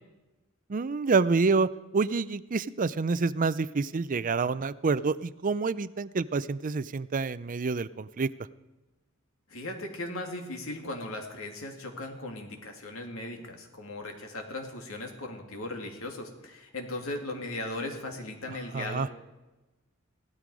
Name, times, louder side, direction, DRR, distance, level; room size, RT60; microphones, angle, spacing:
voice 1, 0.7-8.3 18.7-19.1, right 4 dB, 40° right, 16 dB, 0.5 m, -27 dB
voice 2, 9.5-19.1, left 2 dB, 75° left, 3 dB, 2.5 m, -38 dB
17.0 x 13.0 x 4.9 m, 1.1 s
head